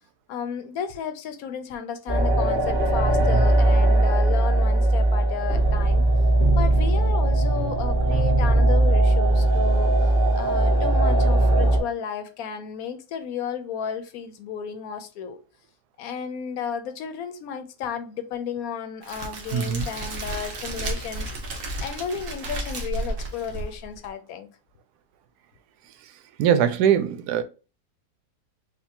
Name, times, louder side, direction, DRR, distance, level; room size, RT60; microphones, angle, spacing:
voice 1, 0.3-6.0 6.5-9.9 10.3-15.4 16.0-21.3 21.8-24.5, left 7 dB, 70° left, 1.0 m, -33 dB
sound 1, 2.1-11.8, right 2 dB, 35° right, 1.5 m, -19 dB
Crackle, 19.0-24.1, right 2 dB, 60° right, 1.2 m, -32 dB
voice 2, 19.5-19.9 26.4-27.4, right 9 dB, 85° right, 1.1 m, -21 dB
5.1 x 2.4 x 2.8 m
omnidirectional pair, 1.7 m